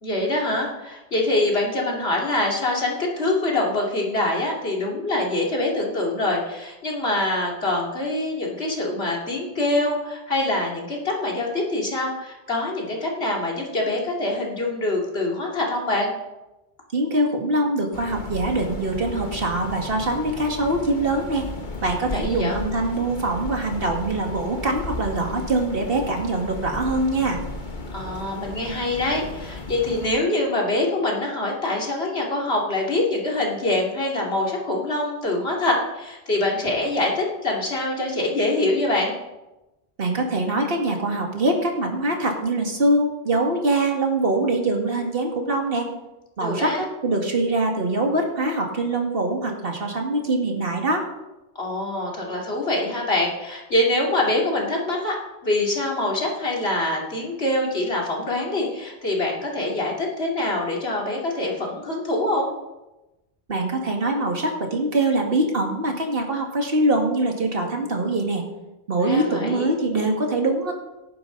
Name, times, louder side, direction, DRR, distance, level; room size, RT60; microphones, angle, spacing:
voice 1, 0.0-16.1 22.1-22.6 27.9-39.1 46.4-46.8 51.5-55.2 55.4-62.5 69.0-69.7, left 2 dB, 75° left, -2 dB, 2.9 m, -24 dB
voice 2, 16.9-21.5 21.8-27.4 40.0-45.9 46.4-51.0 63.5-68.4 68.9-70.7, right 2 dB, 60° right, 1 dB, 2.2 m, -23 dB
sound 1, 17.9-30.1, left 2 dB, 50° left, 1.4 m, -35 dB
18.0 x 9.4 x 4.0 m, 1.0 s
omnidirectional pair, 1.1 m